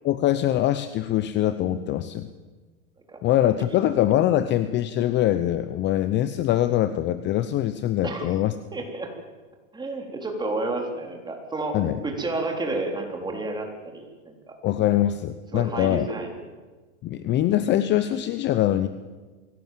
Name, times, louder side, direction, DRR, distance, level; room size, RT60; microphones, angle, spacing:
voice 1, 0.0-2.3 3.2-8.5 11.7-12.0 14.6-16.1 17.0-18.9, left 12 dB, 30° left, 12 dB, 0.8 m, -23 dB
voice 2, 8.0-8.4 8.7-9.1 9.7-11.8 12.0-14.6 15.5-16.3, right 2 dB, 10° right, 2 dB, 3.8 m, -30 dB
23.5 x 17.0 x 7.6 m, 1.3 s
supercardioid pair, 130°, 39 cm